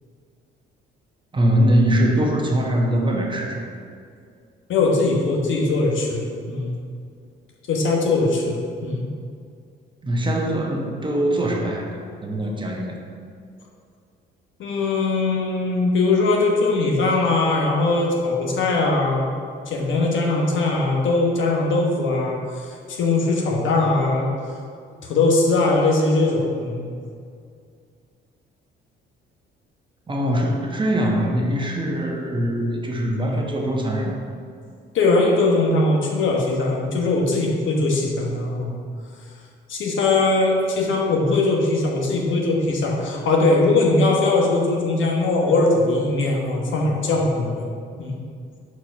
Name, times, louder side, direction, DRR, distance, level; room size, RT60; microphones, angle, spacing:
voice 1, 1.3-3.6 10.0-13.0 30.1-34.2, equal, 20° right, 0 dB, 1.1 m, -22 dB
voice 2, 4.7-6.8 7.7-9.0 14.6-19.3 19.7-24.3 25.0-27.0 34.9-38.8 39.7-47.7 48.0-48.2, left 2 dB, 65° left, -1 dB, 1.3 m, -20 dB
4.7 x 4.3 x 5.9 m, 2.3 s
cardioid pair, 85°, 21 cm